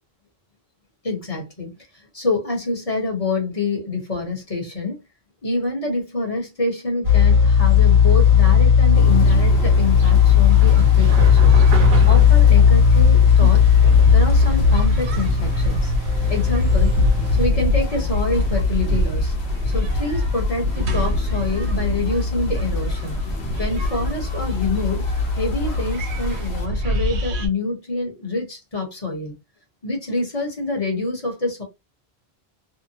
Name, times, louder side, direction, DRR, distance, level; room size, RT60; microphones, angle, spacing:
voice 1, 1.0-5.0 5.4-11.6 12.1-13.6 14.1-15.9 16.3-16.9 17.4-19.3 19.7-23.2 23.6-29.3 29.8-31.6, left 3 dB, 35° left, 1.1 m, -26 dB
sound 1, 7.0-17.5, left 7 dB, 55° right, 1.1 m, -15 dB
sound 2, 8.9-26.7, equal, 85° left, 1.0 m, -32 dB
sound 3, 9.1-27.5, left 2 dB, 85° right, 1.0 m, -24 dB
2.8 x 2.1 x 2.7 m
omnidirectional pair, 1.0 m